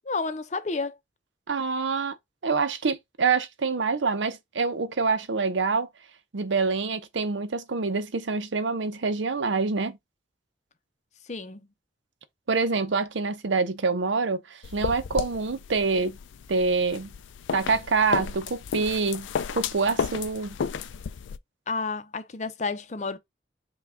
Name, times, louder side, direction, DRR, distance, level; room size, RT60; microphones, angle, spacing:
voice 1, 0.0-1.0 11.2-11.7 21.7-23.2, left 4 dB, 40° left, 0.6 m, -31 dB
voice 2, 1.5-2.2 2.4-5.9 6.3-10.0 12.5-16.2 16.5-17.1 17.5-19.3 19.5-20.6, right 4 dB, 85° right, 0.7 m, -26 dB
sound 1, 14.6-21.4, left 6 dB, 90° left, 0.4 m, -33 dB
5.8 x 2.3 x 3.6 m
head